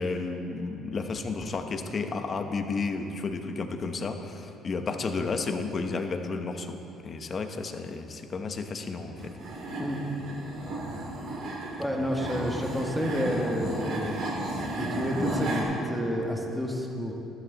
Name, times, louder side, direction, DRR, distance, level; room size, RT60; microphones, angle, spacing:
voice 1, 0.0-9.3 12.0-12.6, left 4 dB, 35° left, 6 dB, 0.9 m, -32 dB
sound 1, 9.2-15.6, right 1 dB, 70° right, 2.9 m, -34 dB
voice 2, 11.8-14.2 14.8-17.1, equal, 5° right, 0 dB, 1.6 m, -30 dB
12.5 x 11.5 x 4.0 m, 2.9 s
cardioid pair, 110°, 0 cm